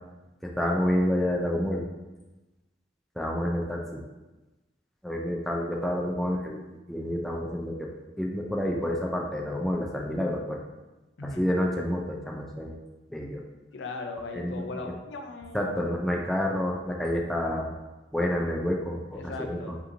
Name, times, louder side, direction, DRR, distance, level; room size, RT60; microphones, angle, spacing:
voice 1, 0.4-1.8 3.2-4.0 5.0-6.6 6.9-7.9 8.2-10.6 11.2-12.7 13.1-13.4 14.3-14.7 15.5-17.7 18.1-19.7, left 1 dB, ahead, -1 dB, 0.3 m, -29 dB
voice 2, 13.7-15.9 19.1-19.8, left 2 dB, 70° left, 4 dB, 0.5 m, -38 dB
5.1 x 2.9 x 2.6 m, 1.1 s
head